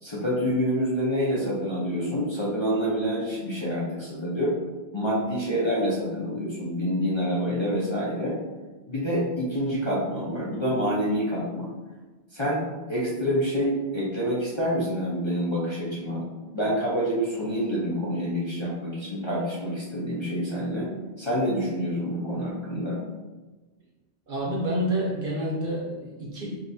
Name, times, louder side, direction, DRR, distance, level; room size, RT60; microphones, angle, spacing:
voice 1, 0.0-4.5 4.9-8.4 8.9-11.7 12.3-12.6 12.9-16.2 16.5-20.9 21.2-23.0, equal, 30° left, -8 dB, 0.7 m, -27 dB
voice 2, 24.3-26.6, equal, 50° right, -3 dB, 0.9 m, -28 dB
5.1 x 2.6 x 2.7 m, 1.2 s
omnidirectional pair, 1.2 m